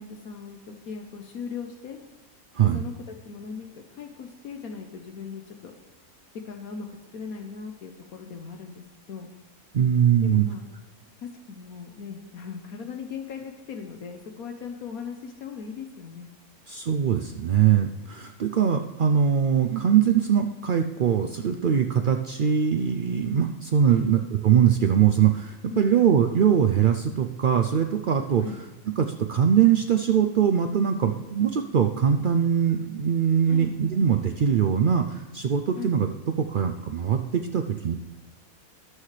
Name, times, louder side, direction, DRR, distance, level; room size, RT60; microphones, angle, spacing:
voice 1, 0.0-2.0 2.7-5.7 6.4-6.9 7.1-8.8 9.1-9.3 10.2-10.6 11.2-16.3 23.9-24.1 25.7-25.9 28.4-28.6 33.5-33.7 35.8-35.9, left 5 dB, 75° left, 3 dB, 1.4 m, -38 dB
voice 2, 9.7-10.5 16.7-36.1 36.4-38.0, right 8 dB, 70° right, 5 dB, 0.5 m, -22 dB
18.5 x 6.5 x 3.3 m, 1.2 s
omnidirectional pair, 1.6 m